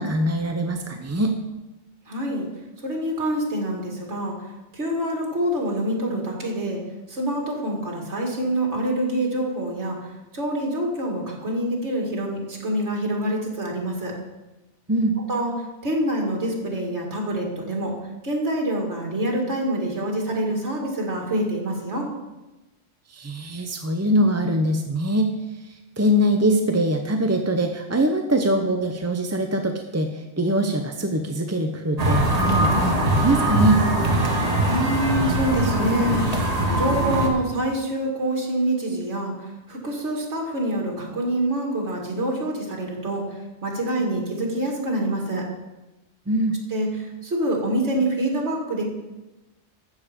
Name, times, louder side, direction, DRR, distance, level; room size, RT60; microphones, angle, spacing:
voice 1, 0.0-1.4 14.9-15.1 23.1-25.3 25.7-33.8 46.3-46.6, right 1 dB, 20° right, 4 dB, 0.5 m, -23 dB
voice 2, 2.1-2.5 2.8-4.3 4.7-6.8 7.1-10.0 10.3-14.1 15.3-15.5 15.8-17.9 18.2-22.1 34.7-36.3 36.8-39.3 39.7-43.2 43.6-45.5 46.7-48.8, right 1 dB, 70° right, 0 dB, 2.5 m, -26 dB
sound 1, 32.0-37.3, right 1 dB, 35° right, 1.6 m, -22 dB
14.5 x 6.7 x 5.1 m, 1.1 s
omnidirectional pair, 1.2 m